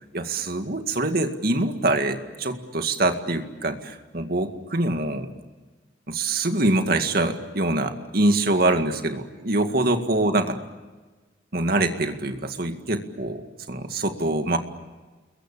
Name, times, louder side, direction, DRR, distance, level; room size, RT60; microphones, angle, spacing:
voice 1, 0.1-5.3 6.1-10.6 11.5-14.6, right 2 dB, 55° right, 7 dB, 2.1 m, -24 dB
29.5 x 22.5 x 8.6 m, 1.3 s
head